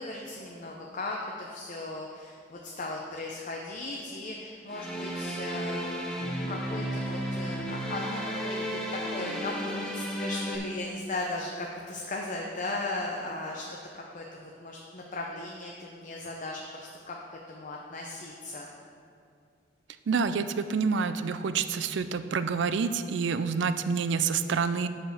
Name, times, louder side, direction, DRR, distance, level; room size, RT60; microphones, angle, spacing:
voice 1, 0.0-6.1 6.5-18.7, left 2 dB, 45° left, -1 dB, 0.7 m, -37 dB
sound 1, 4.7-10.6, equal, 5° left, 0.9 m, -33 dB
voice 2, 20.1-24.9, right 5 dB, 70° right, 11 dB, 0.4 m, -28 dB
7.2 x 5.1 x 6.3 m, 2.4 s
head